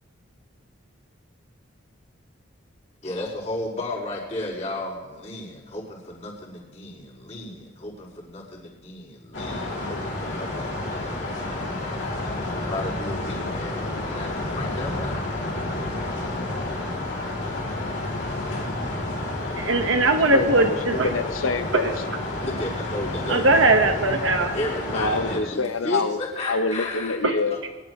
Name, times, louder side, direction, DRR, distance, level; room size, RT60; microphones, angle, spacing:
voice 1, 3.0-11.3 11.9-15.2 22.3-23.5 24.5-27.2 27.5-27.6, left 2 dB, 35° left, -7 dB, 4.9 m, -34 dB
sound 1, 9.3-25.4, left 2 dB, 60° left, 3.0 m, -30 dB
voice 2, 19.6-21.1 23.3-24.5 27.2-27.3, right 2 dB, 70° right, 5 dB, 1.4 m, -20 dB
voice 3, 20.3-21.9 24.9-26.2 26.5-27.7, left 3 dB, 85° left, 9 dB, 0.8 m, -26 dB
22.5 x 12.0 x 3.2 m, 1.3 s
head